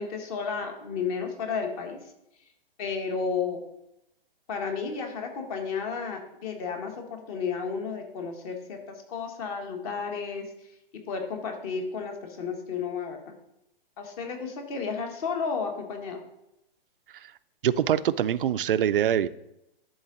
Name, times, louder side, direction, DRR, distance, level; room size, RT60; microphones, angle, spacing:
voice 1, 0.0-2.0 2.8-3.6 4.5-10.7 11.1-13.3 14.0-16.2, left 5 dB, 40° left, 4 dB, 1.5 m, -32 dB
voice 2, 17.6-19.3, right 10 dB, 65° right, 15 dB, 0.5 m, -24 dB
11.0 x 3.9 x 3.8 m, 0.83 s
figure-of-eight pair, 125°, 29 cm